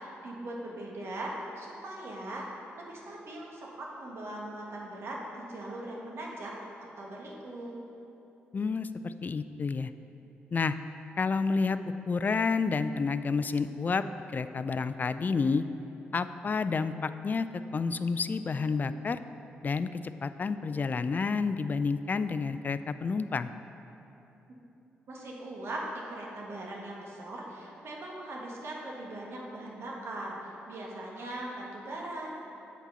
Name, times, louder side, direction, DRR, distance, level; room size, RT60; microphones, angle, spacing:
voice 1, 0.0-2.5 2.8-6.5 7.0-7.8 25.1-32.3, right 1 dB, 65° right, -3 dB, 1.5 m, -40 dB
voice 2, 8.5-9.9 10.5-10.7 11.2-11.8 12.1-14.0 14.3-15.6 16.1-17.5 17.7-19.2 19.6-23.5, left 4 dB, 40° left, 12 dB, 0.3 m, -29 dB
8.0 x 4.1 x 5.6 m, 2.9 s
supercardioid pair, 45°, 5 cm